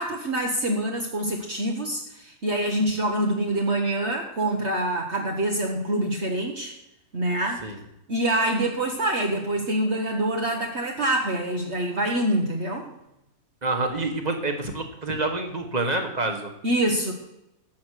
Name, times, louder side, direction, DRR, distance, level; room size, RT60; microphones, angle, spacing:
voice 1, 0.0-6.7 7.1-7.7 8.1-12.9 16.6-17.1, right 1 dB, 50° right, 1 dB, 1.6 m, -25 dB
voice 2, 13.6-16.5, right 2 dB, 30° right, 4 dB, 1.7 m, -27 dB
13.5 x 8.4 x 6.5 m, 0.86 s
omnidirectional pair, 1.5 m